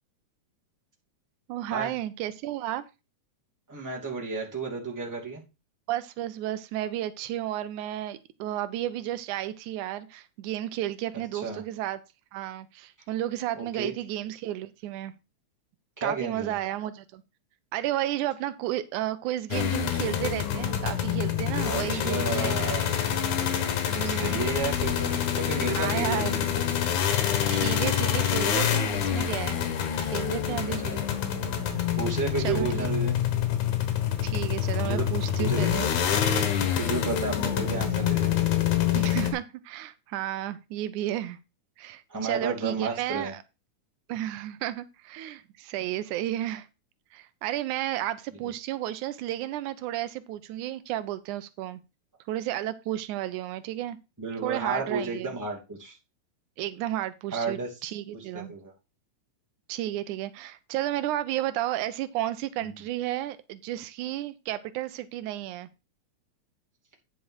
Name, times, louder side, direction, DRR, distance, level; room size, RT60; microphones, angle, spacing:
voice 1, 1.5-2.8 5.9-12.0 12.3-15.1 16.0-17.2 17.7-22.8 23.9-24.5 25.8-26.3 27.5-29.6 30.0-30.8 32.4-32.9 34.2-35.9 38.9-41.4 41.8-43.4 44.1-46.7 47.1-51.8 52.3-54.0 54.4-55.4 56.6-58.5 59.7-65.7, right 13 dB, 85° right, 13 dB, 2.1 m, -32 dB
voice 2, 3.7-5.4 11.4-11.6 13.6-13.9 16.0-16.6 21.7-22.9 24.0-26.7 30.4-30.9 32.0-33.2 34.8-35.1 35.4-35.7 36.7-38.5 42.1-43.3 54.2-56.0 57.3-57.7 58.3-58.7 62.6-62.7, right 4 dB, 5° right, -2 dB, 2.2 m, -32 dB
sound 1, 19.5-39.3, left 9 dB, 80° left, 2.8 m, -26 dB
9.3 x 5.6 x 4.8 m, 0.27 s
omnidirectional pair, 3.4 m